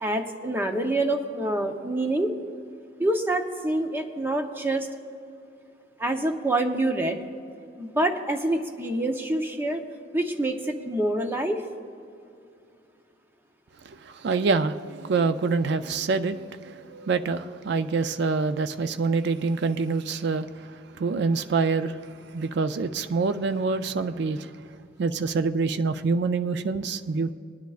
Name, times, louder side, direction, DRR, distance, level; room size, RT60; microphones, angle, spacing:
voice 1, 0.0-2.3 3.0-4.9 6.0-7.2 7.8-9.9 10.1-11.6, right 1 dB, 10° right, 0.7 m, -26 dB
voice 2, 13.8-24.7 25.0-27.3, right 4 dB, 60° right, 0.4 m, -26 dB
19.5 x 10.5 x 2.4 m
head